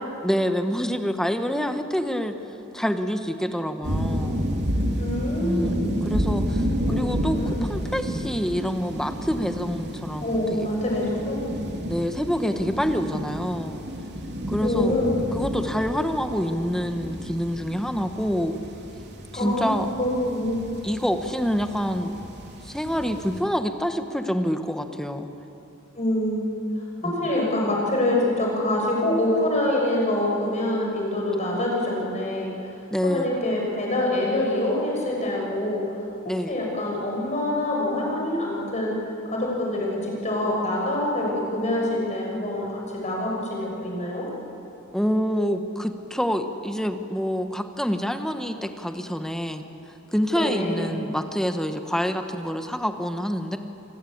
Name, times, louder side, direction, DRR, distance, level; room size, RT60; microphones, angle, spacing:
voice 1, 0.2-2.3 2.7-4.4 5.4-10.7 11.9-13.8 14.5-14.9 15.3-18.5 19.3-19.9 20.8-22.1 22.6-25.3 27.0-27.1 32.9-33.3 36.2-36.5 44.9-49.6 50.1-53.6, equal, ahead, 7 dB, 1.2 m, -27 dB
sound 1, 3.8-23.4, equal, 55° right, 3.0 m, -31 dB
voice 2, 5.0-6.0 6.9-7.0 7.3-7.6 10.2-11.4 14.6-15.2 19.3-20.7 25.9-26.5 27.0-32.7 33.0-36.0 36.5-39.0 39.2-44.3 50.3-50.9, left 1 dB, 35° left, -2 dB, 6.6 m, -25 dB
27.0 x 20.0 x 8.6 m, 3.0 s
head